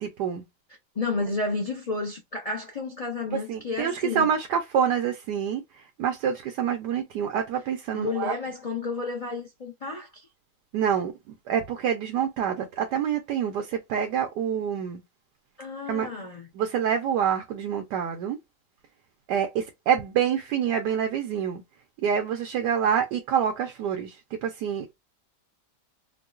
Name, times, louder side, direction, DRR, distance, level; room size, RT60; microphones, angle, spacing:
voice 1, 0.0-0.4 3.5-8.3 10.7-15.0 15.9-16.1 16.5-18.4 19.3-21.6 22.0-24.9, right 8 dB, 90° right, 1.2 m, -27 dB
voice 2, 0.9-4.3 7.9-10.3 15.6-16.5, left 3 dB, 50° left, 0.4 m, -31 dB
4.6 x 2.1 x 2.4 m
omnidirectional pair, 1.8 m